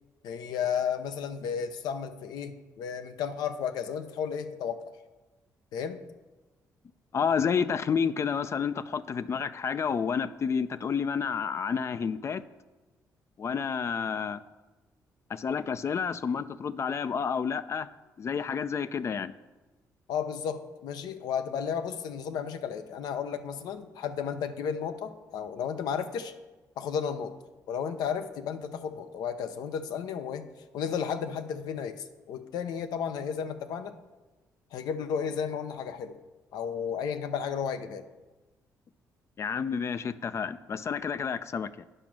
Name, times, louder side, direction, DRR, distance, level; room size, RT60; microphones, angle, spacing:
voice 1, 0.2-4.8 5.7-6.0 20.1-26.3 26.8-27.3 27.7-30.5 30.7-34.0 34.7-36.2 36.5-38.0, left 7 dB, 80° left, 9 dB, 0.7 m, -33 dB
voice 2, 7.1-12.4 13.4-14.4 15.3-17.9 18.2-19.3 39.4-41.8, left 6 dB, 45° left, 14 dB, 0.4 m, -30 dB
9.0 x 5.1 x 6.0 m, 1.2 s
cardioid pair, 85°, 7 cm